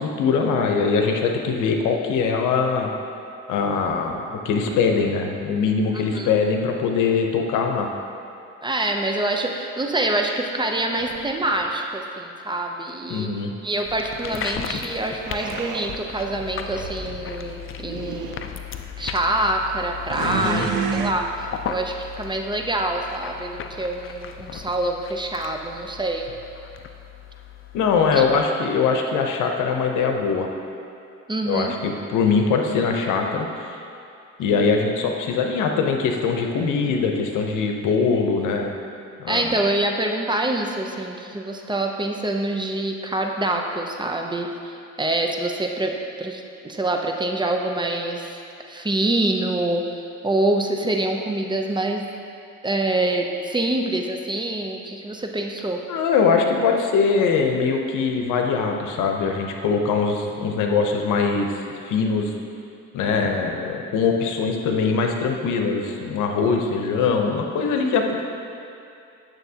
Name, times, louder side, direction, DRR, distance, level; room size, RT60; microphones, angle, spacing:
voice 1, 0.0-2.9 3.5-7.9 13.1-13.5 20.2-20.7 27.7-30.5 31.5-33.8 34.4-38.7 39.2-39.5 55.9-61.5 61.9-62.3 62.9-68.2, left 5 dB, 90° left, 3 dB, 0.8 m, -22 dB
voice 2, 5.9-6.3 8.6-13.3 13.6-18.4 19.0-26.3 28.1-28.2 31.3-31.7 39.3-48.4 48.7-49.9 50.2-52.1 52.6-55.8, right 2 dB, 15° right, 2 dB, 0.6 m, -25 dB
sound 1, 11.0-11.8 15.2-16.0 16.7-17.1 17.8-18.4 20.1-21.1, right 7 dB, 85° right, 0.6 m, -30 dB
sound 2, 13.9-28.5, left 7 dB, 45° left, 0.5 m, -36 dB
9.1 x 6.7 x 2.8 m, 2.6 s
cardioid pair, 90°, 30 cm